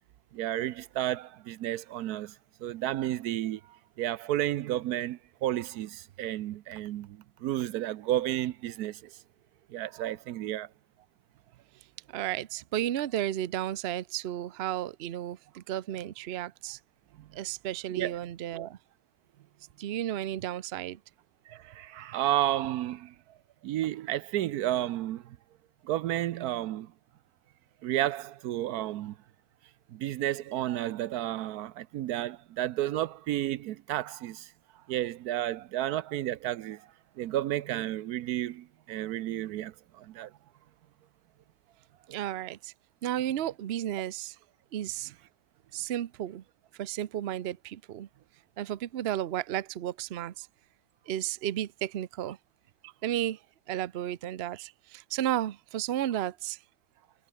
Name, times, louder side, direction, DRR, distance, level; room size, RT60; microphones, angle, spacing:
voice 1, 0.3-2.3 2.6-3.6 4.0-9.1 9.7-10.7 17.2-17.3 18.0-18.2 21.5-23.1 23.6-25.4 25.8-26.9 27.8-29.2 29.9-34.5 34.9-36.9 37.2-40.3, right 13 dB, 75° right, 1.1 m, -32 dB
voice 2, 12.1-16.8 17.3-18.8 19.8-21.0 42.1-42.7 43.0-44.3 44.7-45.1 45.7-46.4 46.8-48.1 48.6-50.5 51.1-52.4 52.8-53.4 53.7-56.6, right 12 dB, 55° right, 0.7 m, -33 dB
omnidirectional pair, 1.7 m